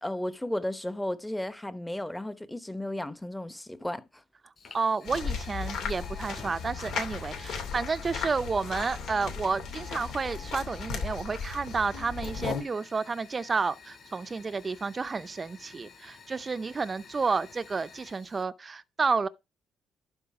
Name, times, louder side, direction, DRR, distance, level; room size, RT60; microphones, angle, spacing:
voice 1, 0.0-4.2, left 1 dB, 10° left, 1.0 m, -34 dB
Fire, 4.6-18.4, left 5 dB, 40° left, 4.9 m, -52 dB
voice 2, 4.7-19.3, right 4 dB, 35° right, 0.6 m, -31 dB
sound 1, 5.0-12.6, left 5 dB, 80° left, 2.7 m, -36 dB
11.5 x 4.0 x 4.8 m
cardioid pair, 90°, 0 cm